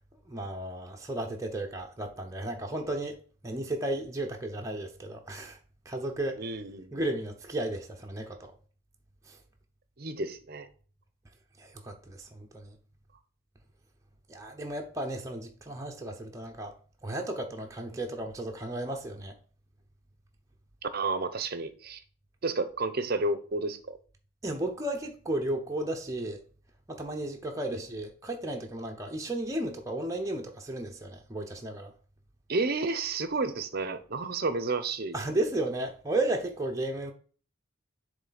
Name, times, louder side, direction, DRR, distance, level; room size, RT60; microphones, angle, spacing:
voice 1, 0.3-3.2 3.4-5.6 5.8-6.4 6.9-8.5 9.3-9.4 11.6-12.8 14.3-19.3 24.4-26.4 26.9-31.9 35.1-37.1, right 1 dB, 15° right, 0.7 m, -34 dB
voice 2, 6.4-7.0 10.0-10.7 20.9-22.0 22.4-24.0 27.7-27.8 32.5-35.1, right 3 dB, 45° right, 0.7 m, -31 dB
7.7 x 3.3 x 3.9 m
head